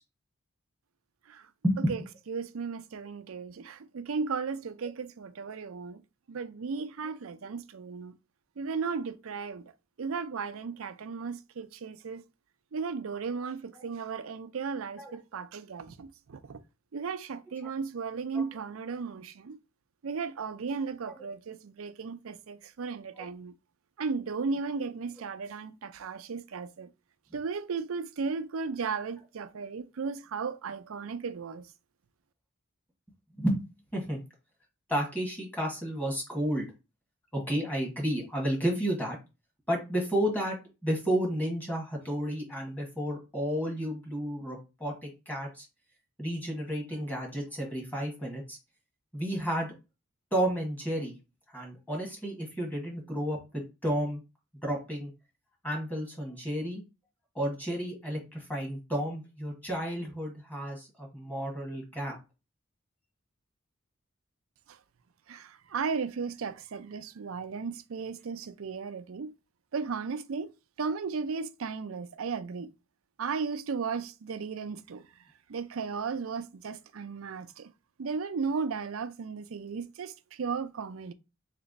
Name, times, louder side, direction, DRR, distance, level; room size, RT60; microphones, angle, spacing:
voice 1, 2.3-6.0 6.3-8.1 8.6-9.6 10.0-12.2 12.7-16.6 16.9-19.6 20.0-23.5 24.0-26.9 27.3-31.7 64.7-64.8 65.3-69.3 69.7-70.5 70.8-72.7 73.2-75.0 75.5-77.7 78.0-81.1, right 5 dB, 90° right, 0.5 m, -35 dB
voice 2, 34.9-36.6 37.3-39.2 39.7-40.6 40.8-45.7 46.2-48.6 49.1-49.7 50.3-51.1 51.5-54.2 54.6-55.1 55.6-56.8 57.3-62.1, equal, 10° left, 1.5 m, -32 dB
3.4 x 2.9 x 4.0 m
head